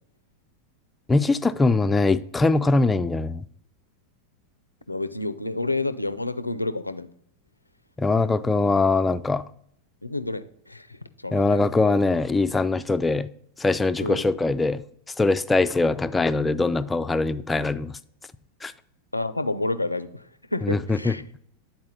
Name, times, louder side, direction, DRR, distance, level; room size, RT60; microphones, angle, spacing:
voice 1, 1.1-3.4 8.0-9.4 11.3-13.3 13.6-14.8 15.2-18.0 18.6-18.7 20.6-21.1, left 3 dB, 10° left, 0.3 m, -22 dB
voice 2, 4.9-7.1 10.0-11.6 14.0-14.2 19.1-21.2, left 2 dB, 85° left, 0.4 m, -29 dB
9.5 x 4.2 x 4.0 m
figure-of-eight pair, 90°, 0 cm